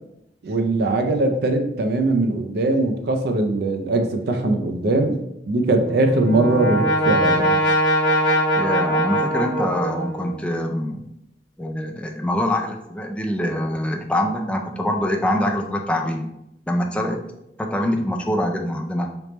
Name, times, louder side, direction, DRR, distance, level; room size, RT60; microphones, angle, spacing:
voice 1, 0.4-5.2 5.5-7.6, right 2 dB, 60° right, 5 dB, 0.5 m, -21 dB
Brass instrument, 5.7-10.5, equal, 75° left, 1.0 m, -21 dB
voice 2, 8.6-11.0 11.6-16.3 16.7-17.2 17.6-19.1, left 1 dB, 5° left, 2 dB, 0.3 m, -24 dB
3.4 x 3.0 x 3.0 m, 0.82 s
head